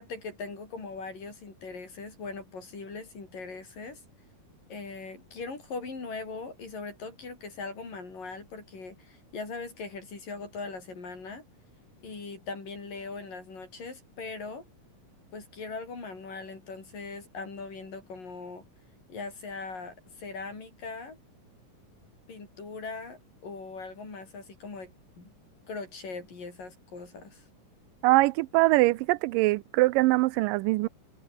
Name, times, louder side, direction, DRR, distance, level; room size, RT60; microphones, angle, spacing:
voice 1, 0.0-4.0 4.7-11.4 12.0-14.7 15.3-18.6 19.1-21.2 22.3-25.3 25.7-27.5, left 4 dB, 75° left, 8.7 m, -40 dB
voice 2, 28.0-30.9, right 20 dB, 85° right, 2.3 m, -23 dB
omnidirectional pair, 3.9 m